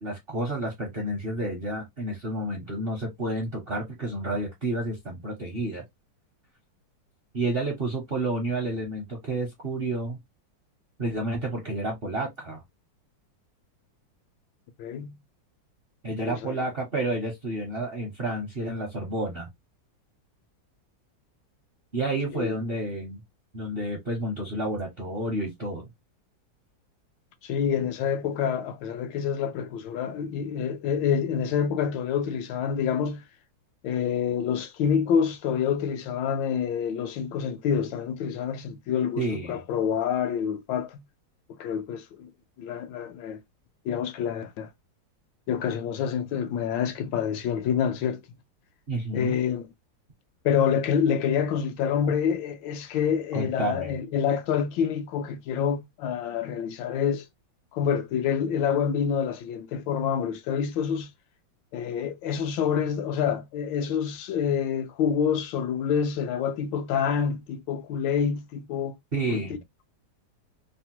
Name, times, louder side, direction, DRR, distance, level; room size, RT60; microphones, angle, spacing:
voice 1, 0.0-5.8 7.3-10.2 11.0-12.6 16.0-19.5 21.9-23.2 23.5-25.8 39.2-39.6 48.9-49.4 53.3-54.0 69.1-69.6, right 2 dB, 50° right, 0.6 m, -30 dB
voice 2, 14.8-15.2 16.2-16.6 22.3-22.5 27.4-33.2 33.8-41.0 41.6-42.3 42.6-43.4 43.8-44.7 45.5-48.2 49.1-49.7 50.4-57.3 57.7-61.1 61.7-68.9 69.3-69.4, left 7 dB, 80° left, 1.3 m, -27 dB
3.4 x 2.1 x 2.8 m
omnidirectional pair, 2.1 m